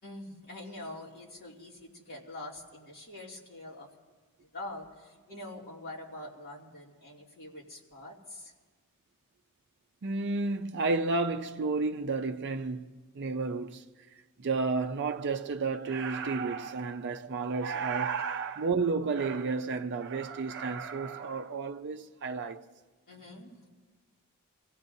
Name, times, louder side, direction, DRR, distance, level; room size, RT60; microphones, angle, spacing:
voice 1, 0.0-3.9 4.4-8.5 23.1-23.7, left 1 dB, 45° left, 2.7 m, -45 dB
voice 2, 10.0-13.9 14.4-22.6, right 4 dB, 50° right, 0.5 m, -31 dB
26.5 x 16.5 x 2.7 m
head